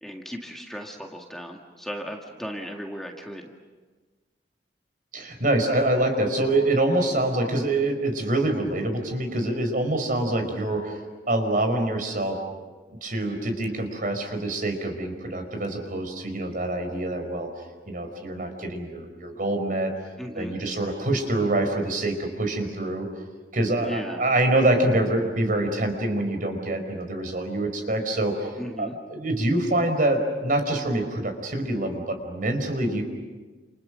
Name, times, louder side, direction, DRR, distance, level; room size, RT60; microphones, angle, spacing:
voice 1, 0.0-3.5 20.2-20.6 23.8-24.2 28.6-29.0, equal, ahead, 1 dB, 2.0 m, -36 dB
voice 2, 5.1-11.0 11.3-12.4 13.0-17.5 17.9-19.9 20.3-23.1 23.5-33.0, right 1 dB, 50° right, 6 dB, 5.1 m, -25 dB
30.0 x 29.0 x 6.4 m, 1.3 s
head